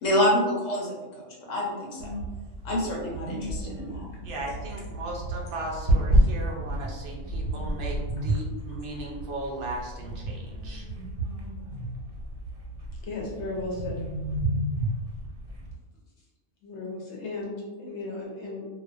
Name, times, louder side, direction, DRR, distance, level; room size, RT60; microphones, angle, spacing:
voice 1, 0.0-2.1 2.6-4.0, equal, 90° left, -3 dB, 1.1 m, -27 dB
sound 1, 2.0-15.8, right 1 dB, 85° right, 1.0 m, -30 dB
voice 2, 4.2-10.9, right 2 dB, 55° right, -2 dB, 0.7 m, -37 dB
voice 3, 13.0-14.0 16.6-18.8, left 3 dB, 70° left, -3 dB, 0.9 m, -35 dB
2.4 x 2.3 x 2.4 m, 1.2 s
omnidirectional pair, 1.3 m